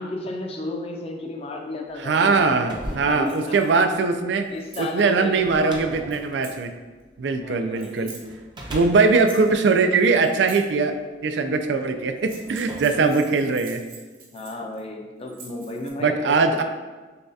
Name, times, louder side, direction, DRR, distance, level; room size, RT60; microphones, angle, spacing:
voice 1, 0.0-2.5 2.9-3.9 4.5-6.1 6.4-6.5 7.4-8.2 12.6-13.5 14.3-16.6, left 2 dB, 35° left, 2 dB, 0.5 m, -34 dB
sound 1, 2.0-7.6 8.2-10.7 11.5-11.6 12.2-13.9, equal, 25° right, 0.6 m, -40 dB
voice 2, 2.0-4.5 4.8-6.7 7.2-8.1 8.7-10.9 11.2-13.8 16.0-16.6, right 4 dB, 70° right, 7 dB, 0.4 m, -21 dB
sound 2, 3.3-3.8 4.4-4.9 6.1-6.6 7.8-8.2 9.1-9.7 10.2-10.7 12.1-14.8 15.2-15.9, right 4 dB, 50° right, 0.8 m, -45 dB
6.5 x 2.3 x 2.7 m, 1.3 s
head